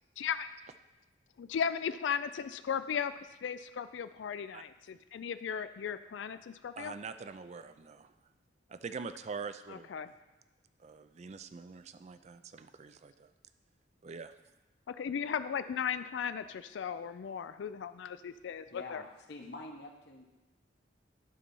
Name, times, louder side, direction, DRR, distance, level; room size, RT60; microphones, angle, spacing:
voice 1, 0.2-0.5 1.4-3.1 3.4-6.9 9.7-10.1 14.9-19.0, left 7 dB, 85° left, 12 dB, 0.4 m, -36 dB
voice 2, 6.8-8.1 8.7-9.9 10.8-13.3 14.0-14.3, right 5 dB, 40° right, 11 dB, 0.4 m, -44 dB
voice 3, 18.7-20.3, left 2 dB, 65° left, 1 dB, 1.1 m, -46 dB
11.5 x 4.3 x 5.4 m, 1.0 s
head